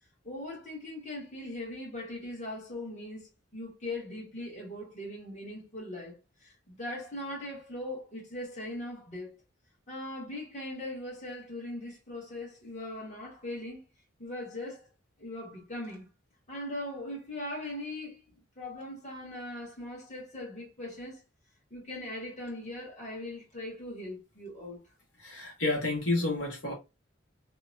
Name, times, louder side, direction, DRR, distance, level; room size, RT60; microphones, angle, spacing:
voice 1, 0.2-9.4 9.9-13.8 14.2-14.9 15.2-16.1 16.5-18.2 18.6-21.2 21.7-24.8, left 1 dB, 40° left, 1.3 m, -40 dB
voice 2, 25.2-26.7, left 2 dB, 70° left, 1.2 m, -30 dB
2.8 x 2.1 x 2.5 m
head